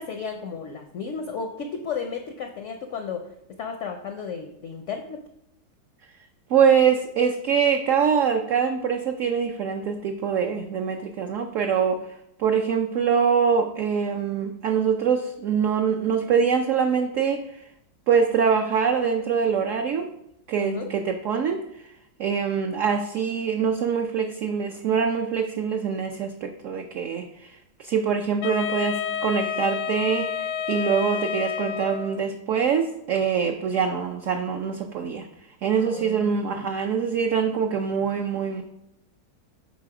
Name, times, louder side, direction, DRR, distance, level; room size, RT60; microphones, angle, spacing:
voice 1, 0.0-3.3 3.6-5.2 20.6-20.9 35.8-36.5, left 6 dB, 70° left, 5 dB, 0.7 m, -33 dB
voice 2, 6.5-12.0 12.4-17.4 18.1-20.1 20.5-21.6 22.2-35.3 35.6-38.6, right 6 dB, 70° right, 4 dB, 0.7 m, -24 dB
Wind instrument woodwind instrument, 28.4-32.3, left 8 dB, 85° left, 1.3 m, -29 dB
7.5 x 4.0 x 4.8 m, 0.79 s
omnidirectional pair, 1.9 m